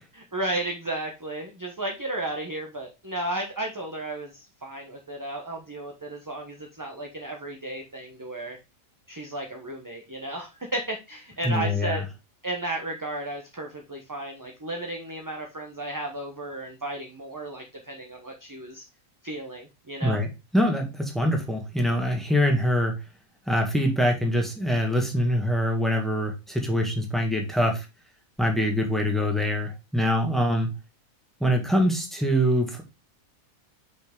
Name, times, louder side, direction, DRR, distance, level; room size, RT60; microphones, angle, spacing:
voice 1, 0.1-8.6 9.1-12.1 12.4-18.8 19.2-20.2, right 1 dB, 15° right, 2 dB, 0.8 m, -34 dB
voice 2, 11.4-12.0 20.0-22.9 23.5-27.8 28.4-30.7 31.4-32.8, equal, ahead, 2 dB, 1.6 m, -24 dB
5.9 x 5.4 x 3.6 m, 0.26 s
omnidirectional pair, 1.5 m